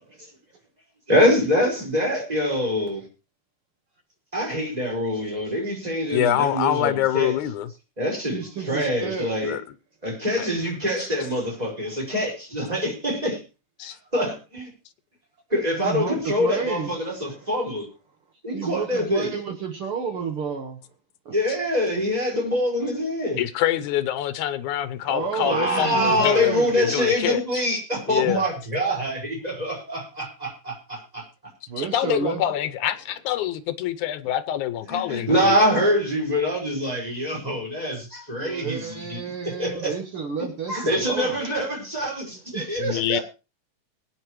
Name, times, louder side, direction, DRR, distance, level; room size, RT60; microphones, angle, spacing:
voice 1, 1.1-3.0 4.3-7.3 8.0-9.6 10.0-13.4 14.1-14.7 15.5-17.8 18.4-19.3 21.3-23.4 25.4-31.2 34.9-39.2 39.6-39.9 40.7-43.0, equal, 10° right, 4.9 m, -25 dB
voice 2, 6.1-7.7 9.4-9.6 10.4-10.5 11.0-11.1 13.8-14.0 23.4-27.6 28.1-28.4 31.8-35.6 42.8-43.2, left 12 dB, 90° left, 2.3 m, -25 dB
voice 3, 8.3-9.3 11.8-12.0 15.8-17.5 18.5-20.8 21.3-21.4 25.0-26.8 31.7-32.4 38.4-41.4 42.5-43.2, right 6 dB, 55° right, 1.9 m, -31 dB
22.5 x 9.0 x 3.1 m
omnidirectional pair, 3.3 m